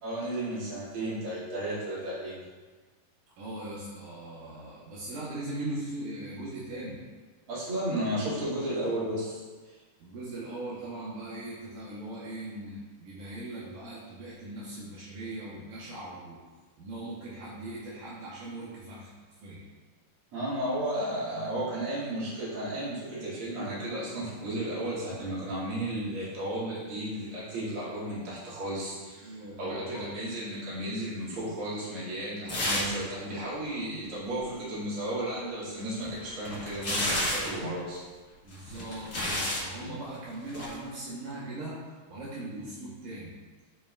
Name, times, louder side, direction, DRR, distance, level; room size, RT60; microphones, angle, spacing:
voice 1, 0.0-2.4 7.5-9.8 20.3-38.0 39.8-39.9, right 1 dB, 45° right, -9 dB, 2.8 m, -34 dB
voice 2, 3.4-7.0 8.9-9.1 10.0-16.4 16.8-19.1 19.4-19.7 29.2-30.1 38.4-41.8 42.1-43.4, right 1 dB, 75° right, -7 dB, 2.4 m, -40 dB
sound 1, 32.5-33.0 33.3-33.4 35.8-37.6 38.5-39.7 40.5-40.7, left 1 dB, 40° left, 1.1 m, -31 dB
9.9 x 4.8 x 2.3 m, 1.4 s
omnidirectional pair, 3.8 m